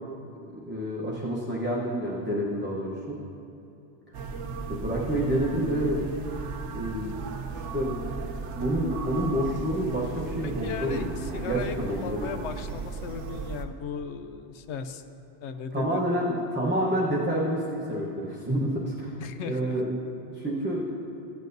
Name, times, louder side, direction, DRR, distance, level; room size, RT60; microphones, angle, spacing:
voice 1, 0.4-3.1 4.7-6.1 6.7-7.2 7.5-7.9 8.5-12.4 15.7-17.6 17.9-19.2 19.4-20.0 20.3-21.0, equal, 10° right, -6 dB, 0.8 m, -28 dB
sound 1, 4.1-13.6, right 4 dB, 90° right, 1.0 m, -36 dB
voice 2, 10.4-15.0 15.4-16.0 19.2-19.7, left 6 dB, 80° left, 9 dB, 0.9 m, -37 dB
14.5 x 9.0 x 2.6 m, 2.8 s
omnidirectional pair, 1.2 m